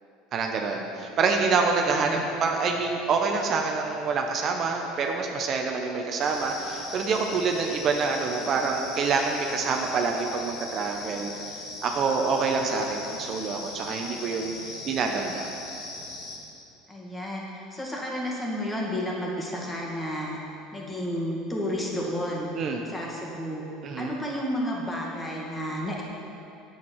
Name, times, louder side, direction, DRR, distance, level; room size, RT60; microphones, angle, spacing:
voice 1, 0.3-11.3 11.8-14.5 14.9-15.5 22.5-22.8 23.8-24.1, right 4 dB, 45° right, 2 dB, 0.8 m, -26 dB
voice 2, 1.8-2.3 16.9-20.4 20.7-22.5 22.9-23.6 24.0-26.0, equal, 15° left, -3 dB, 2.1 m, -31 dB
sound 1, 6.2-16.4, left 3 dB, 65° left, 1.5 m, -39 dB
8.3 x 7.5 x 4.7 m, 2.7 s
hypercardioid pair, 80°, 0 cm